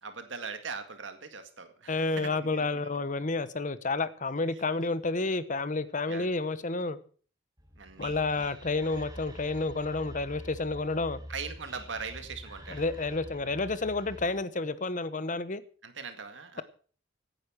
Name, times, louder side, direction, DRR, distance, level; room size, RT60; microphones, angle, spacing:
voice 1, 0.0-2.8 6.1-6.3 7.8-8.5 11.3-12.9 15.8-16.6, right 5 dB, 70° right, 2.0 m, -41 dB
voice 2, 1.9-7.0 8.0-11.2 12.7-15.6, left 3 dB, 40° left, 1.1 m, -30 dB
Whispering, 7.6-14.5, equal, 20° right, 6.9 m, -46 dB
17.0 x 9.7 x 6.3 m
head